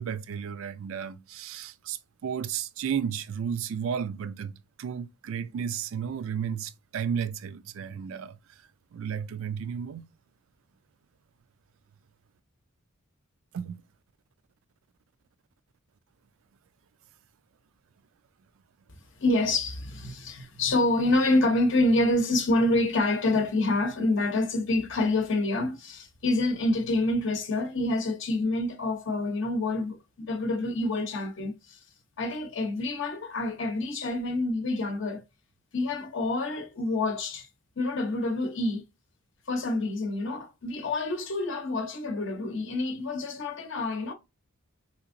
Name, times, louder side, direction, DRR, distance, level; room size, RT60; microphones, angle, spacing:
voice 1, 0.0-4.5 4.8-8.4 8.9-10.0 13.5-13.8, right 7 dB, 65° right, 0.3 m, -33 dB
voice 2, 19.2-31.8 32.2-35.2 35.7-37.5 37.8-38.8 39.5-44.1, left 2 dB, 60° left, 0.7 m, -27 dB
3.5 x 2.9 x 2.5 m
head